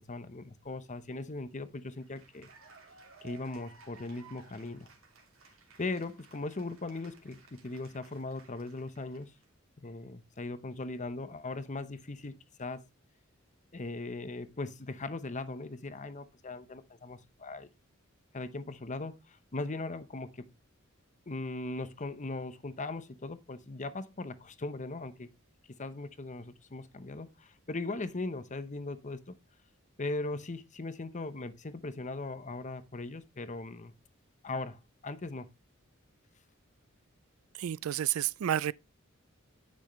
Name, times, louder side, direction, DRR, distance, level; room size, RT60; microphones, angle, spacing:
voice 1, 0.0-2.5 3.2-4.9 5.8-9.4 9.8-12.8 13.7-17.7 18.3-20.5 21.3-25.3 25.8-29.4 30.0-33.9 34.4-35.5, left 2 dB, 35° left, 0.9 m, -39 dB
Cheering / Applause, 1.9-9.4, right 4 dB, 70° right, 2.7 m, -58 dB
voice 2, 37.5-38.7, right 11 dB, 90° right, 0.4 m, -30 dB
10.0 x 6.3 x 3.1 m
head